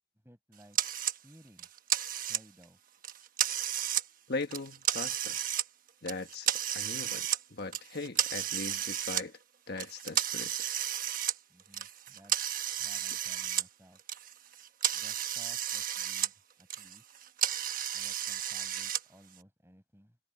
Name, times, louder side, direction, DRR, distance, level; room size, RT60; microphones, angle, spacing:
voice 1, 0.2-0.8 1.2-1.7 2.3-2.8 11.5-14.0 14.9-17.1 17.9-20.2, equal, 10° right, 7.1 m, -58 dB
sound 1, 0.7-1.2 1.6-2.6 3.0-4.1 4.4-5.7 6.1-7.4 7.7-9.2 9.8-13.7 14.0-16.3 16.6-19.0, right 11 dB, 45° right, 1.2 m, -33 dB
voice 2, 4.3-5.4 6.0-9.4 9.7-10.7, left 3 dB, 50° left, 1.4 m, -39 dB
head